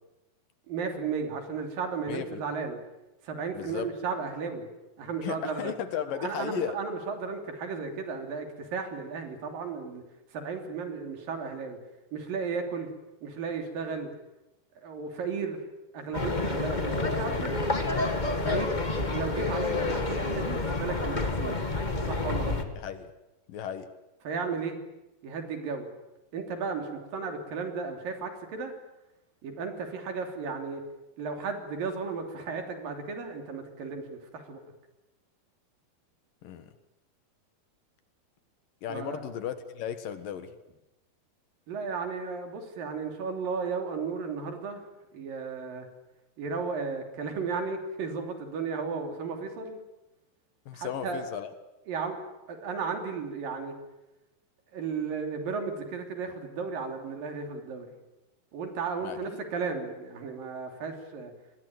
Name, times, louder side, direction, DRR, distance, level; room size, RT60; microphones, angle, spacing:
voice 1, 0.7-2.8 3.2-4.7 5.0-5.7 6.2-10.0 10.3-11.8 12.1-12.9 13.2-14.1 14.8-15.6 15.9-17.6 18.4-18.7 19.1-21.7 22.1-22.6 24.2-24.8 25.2-25.9 26.3-28.7 29.4-30.8 31.2-34.6 38.9-39.2 41.7-44.8 45.1-45.9 46.4-49.8 50.7-51.2 51.9-52.2 52.5-53.8 54.7-57.9 58.5-61.3, right 5 dB, 65° right, 5 dB, 4.7 m, -34 dB
voice 2, 2.1-2.4 3.5-3.9 5.2-6.8 18.4-18.7 22.8-23.1 23.5-23.9 36.4-36.7 38.8-40.5 50.7-51.5 59.0-59.4, left 9 dB, 70° left, 10 dB, 3.1 m, -35 dB
sound 1, 16.1-22.6, left 2 dB, 30° left, 0.8 m, -29 dB
26.0 x 20.5 x 9.0 m, 0.97 s
omnidirectional pair, 4.3 m